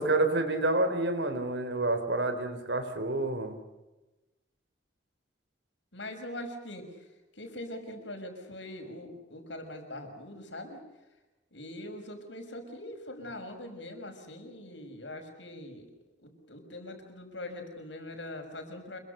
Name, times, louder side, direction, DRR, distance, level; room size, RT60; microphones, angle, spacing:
voice 1, 0.0-3.6, right 2 dB, 70° right, 9 dB, 3.6 m, -28 dB
voice 2, 5.9-6.9 7.4-10.8 11.5-15.9 16.2-19.0, left 1 dB, 75° left, 5 dB, 6.1 m, -42 dB
27.5 x 23.5 x 6.7 m, 1.1 s
head